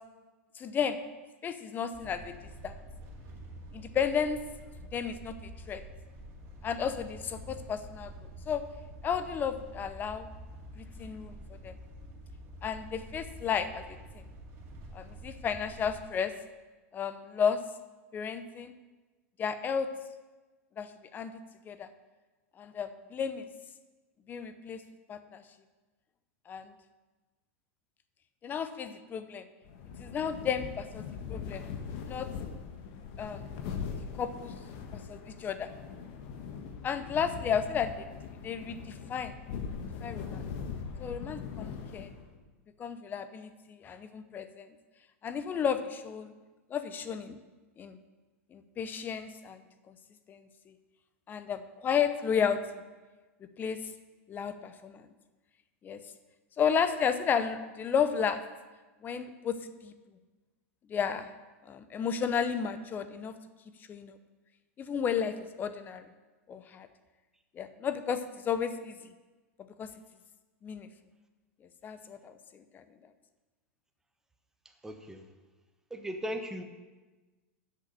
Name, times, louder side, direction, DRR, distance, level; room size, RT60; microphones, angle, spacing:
voice 1, 0.6-1.0 1.4-2.3 2.6-2.8 3.7-4.4 4.9-5.8 6.6-8.1 8.5-8.6 9.0-10.3 10.8-11.8 12.6-13.8 14.1-14.2 14.9-16.3 16.9-17.6 18.1-18.7 19.4-19.9 20.8-21.3 21.6-21.9 22.6-23.5 24.3-24.8 25.1-25.4 26.5-26.7 28.4-29.4 30.0-31.6 32.0-32.3 33.2-33.4 34.2-34.5 35.1-35.7 36.8-38.1 38.4-39.3 40.0-40.4 41.0-42.1 42.8-44.7 45.2-46.3 46.7-47.4 47.8-48.0 48.5-50.0 50.3-50.7 51.3-52.8 53.6-53.8 54.3-55.1 55.8-56.0 56.6-58.4 59.0-59.6 59.8-59.9 60.9-61.3 61.7-63.3 63.9-64.2 64.8-66.1 66.5-66.9 67.5-69.0 69.8-69.9 70.6-70.9 71.8-72.8, left 7 dB, 25° left, 11 dB, 0.7 m, -33 dB
sound 1, 1.9-16.0, right 1 dB, 35° right, 2.7 m, -47 dB
sound 2, 29.6-42.4, left 6 dB, 55° left, 1.2 m, -41 dB
voice 2, 74.8-75.2 75.9-76.6, equal, 5° right, 5 dB, 0.9 m, -37 dB
8.2 x 6.4 x 7.8 m, 1.2 s
hypercardioid pair, 130°, 8 cm